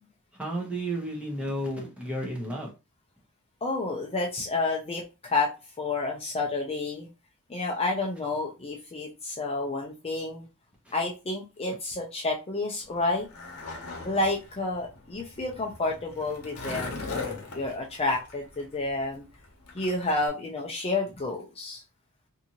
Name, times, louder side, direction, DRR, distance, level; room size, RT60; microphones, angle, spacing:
voice 1, 0.4-2.7 10.9-11.0, right 1 dB, 5° right, -1 dB, 0.9 m, -32 dB
voice 2, 3.6-5.5 5.8-7.1 7.5-10.5 10.9-13.3 14.0-19.2 19.7-21.8, left 2 dB, 25° left, -1 dB, 0.5 m, -30 dB
Skateboard, 12.8-20.3, left 4 dB, 75° left, 0.9 m, -40 dB
2.7 x 2.5 x 2.8 m, 0.28 s
head